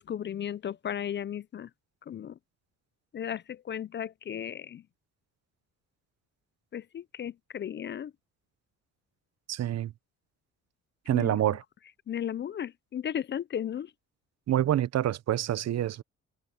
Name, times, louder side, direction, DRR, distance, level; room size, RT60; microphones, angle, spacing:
voice 1, 0.0-1.7 2.1-2.3 3.1-4.8 6.7-8.1 11.1-11.4 12.1-13.9, left 9 dB, 40° left, 0.4 m, -35 dB
voice 2, 9.5-9.9 11.1-11.6 14.5-16.0, right 12 dB, 60° right, 0.8 m, -27 dB
cardioid pair, 90°, 30 cm